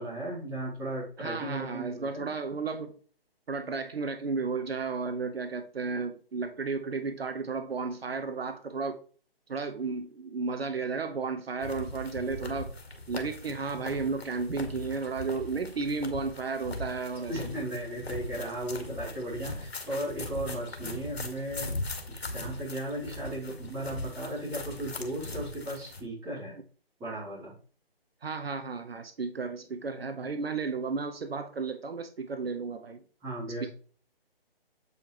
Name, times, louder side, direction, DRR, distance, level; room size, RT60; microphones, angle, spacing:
voice 1, 0.0-2.3 17.3-21.7 22.1-26.6 27.0-27.5 33.2-33.7, right 1 dB, 10° right, 3.0 m, -36 dB
voice 2, 1.2-2.9 3.5-9.0 9.5-12.7 13.1-17.5 28.2-33.0 33.6-33.7, right 4 dB, 75° right, 1.0 m, -33 dB
sound 1, 11.6-26.0, left 2 dB, 85° left, 1.8 m, -40 dB
8.3 x 5.3 x 3.1 m
hypercardioid pair, 160°, 30 cm